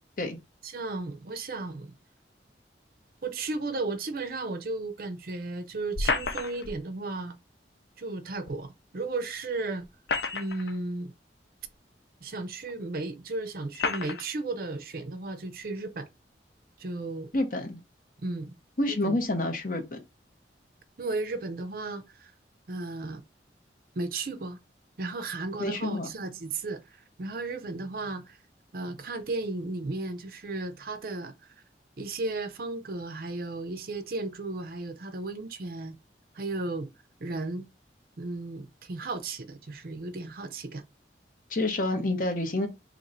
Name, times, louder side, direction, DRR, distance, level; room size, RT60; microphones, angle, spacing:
voice 1, 0.6-2.0 3.2-7.4 8.0-9.9 10.3-11.1 12.2-16.1 16.8-17.3 18.2-18.6 18.9-19.2 21.0-22.3 22.7-23.2 24.0-24.6 25.0-28.4 28.7-31.3 32.0-36.0 36.3-36.9 37.2-37.7 38.2-40.9, right 3 dB, 50° right, 0.5 m, -34 dB
sound 1, 5.9-6.8 8.5-8.6 9.8-10.8 11.6-11.7 12.7-12.8 13.7-14.3, left 4 dB, 70° left, 0.5 m, -30 dB
voice 2, 17.3-17.8 18.8-20.0 25.6-26.1 41.5-42.7, left 2 dB, 45° left, 0.9 m, -28 dB
2.9 x 2.6 x 4.1 m
head